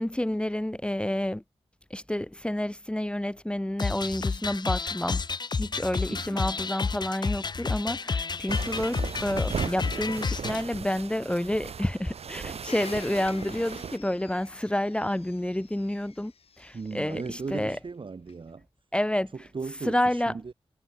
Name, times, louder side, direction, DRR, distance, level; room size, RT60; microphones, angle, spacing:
voice 1, 0.0-1.4 1.9-5.2 5.6-16.3 16.6-17.8 18.9-20.4, left 1 dB, 10° left, 2.2 m, -29 dB
sound 1, 3.8-10.6, left 4 dB, 45° left, 0.8 m, -30 dB
voice 2, 6.1-6.4 16.7-18.7 19.3-20.5, right 4 dB, 55° right, 3.7 m, -37 dB
sound 2, 8.5-14.0, right 6 dB, 80° right, 1.2 m, -37 dB
Domestic sounds home sounds, 12.7-17.5 18.3-18.4, left 5 dB, 70° left, 4.0 m, -46 dB
wide cardioid pair, 85°, 10 cm